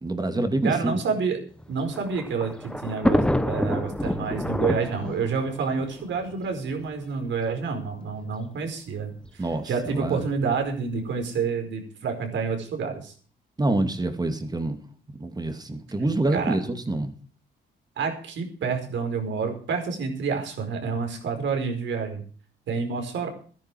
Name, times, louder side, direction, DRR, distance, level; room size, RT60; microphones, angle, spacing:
voice 1, 0.0-1.0 9.4-10.2 13.6-14.8 15.2-17.1, right 2 dB, 20° right, 7 dB, 2.5 m, -26 dB
voice 2, 0.6-1.4 1.7-13.1 16.3-16.6 18.0-22.2 22.7-23.3, right 5 dB, 70° right, 4 dB, 4.8 m, -28 dB
Thunder, 1.6-6.9 7.7-7.8 8.1-8.2 9.2-9.5, left 1 dB, 5° left, 1.2 m, -28 dB
13.5 x 10.5 x 6.1 m, 0.43 s
cardioid pair, 90°, 20 cm